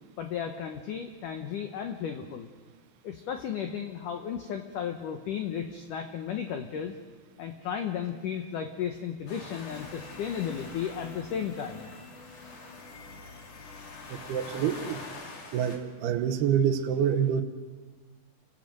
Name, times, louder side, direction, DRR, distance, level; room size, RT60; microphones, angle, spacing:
voice 1, 0.2-2.5 3.0-6.9 7.4-11.9, left 8 dB, 75° left, 5 dB, 1.9 m, -34 dB
sound 1, 9.3-15.8, left 3 dB, 40° left, 3.2 m, -45 dB
sound 2, 9.7-15.1, left 4 dB, 60° left, 3.7 m, -49 dB
voice 2, 14.1-15.0 15.5-17.4, right 8 dB, 70° right, 5 dB, 2.8 m, -27 dB
27.0 x 16.0 x 7.9 m, 1.4 s
omnidirectional pair, 5.2 m